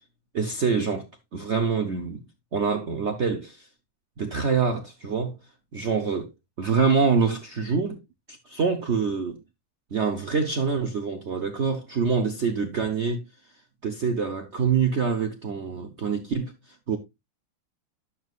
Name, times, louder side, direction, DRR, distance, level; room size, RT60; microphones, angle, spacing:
voice 1, 0.3-1.1 1.3-2.2 2.5-3.7 4.2-5.4 5.7-6.3 6.6-8.0 8.3-9.4 9.9-13.2 13.8-17.0, right 5 dB, 80° right, 0.6 m, -25 dB
11.0 x 7.2 x 2.4 m
omnidirectional pair, 2.3 m